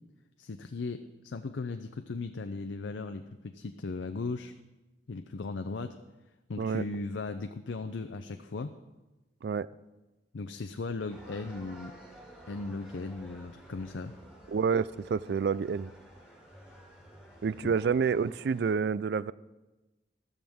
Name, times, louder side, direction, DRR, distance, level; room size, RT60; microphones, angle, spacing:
voice 1, 0.4-4.5 5.1-6.0 6.5-8.7 10.3-11.9 12.5-14.1 17.6-17.7, left 3 dB, 85° left, 7 dB, 0.5 m, -37 dB
sound 1, 11.1-18.7, right 1 dB, 5° right, 2.3 m, -52 dB
voice 2, 14.5-15.9 17.4-19.3, right 6 dB, 60° right, 19 dB, 0.3 m, -28 dB
13.5 x 13.0 x 3.6 m, 1.1 s
head